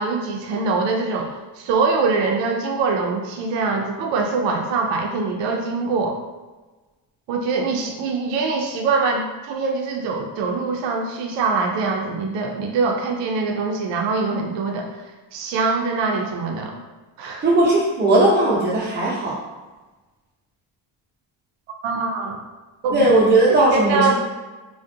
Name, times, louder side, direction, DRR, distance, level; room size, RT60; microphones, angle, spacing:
voice 1, 0.0-6.2 7.3-14.9 15.3-16.8 17.2-17.4 21.8-22.4 22.8-23.2 23.9-24.1, right 4 dB, 75° right, 2 dB, 0.5 m, -23 dB
voice 2, 17.4-19.4 22.9-24.1, right 2 dB, 25° right, -6 dB, 0.7 m, -17 dB
2.3 x 2.1 x 2.6 m, 1.2 s
cardioid pair, 100°, 44 cm